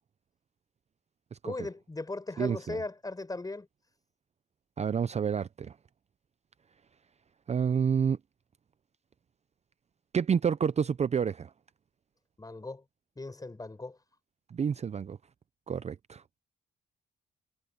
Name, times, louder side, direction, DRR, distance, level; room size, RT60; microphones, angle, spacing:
voice 1, 1.4-3.7 12.4-12.8 13.2-14.0, left 2 dB, 20° left, 5.9 m, -38 dB
voice 2, 2.4-2.8 4.8-5.8 7.5-8.2 10.1-11.5 14.5-15.2 15.7-16.2, right 7 dB, 35° right, 0.6 m, -29 dB
cardioid pair, 90°, 20 cm